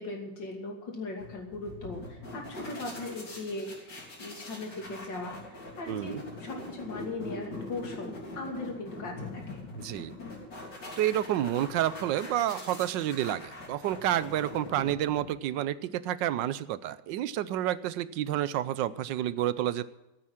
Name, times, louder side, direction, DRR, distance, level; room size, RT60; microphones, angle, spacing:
voice 1, 0.0-3.9 4.2-5.4 5.8-9.6, left 2 dB, 90° left, 1 dB, 3.4 m, -38 dB
sound 1, 1.2-15.5, left 2 dB, 70° left, 4.0 m, -43 dB
voice 2, 5.9-6.2 9.7-10.1 11.0-19.8, right 12 dB, 80° right, 16 dB, 1.3 m, -29 dB
14.0 x 8.5 x 7.3 m, 0.99 s
omnidirectional pair, 1.9 m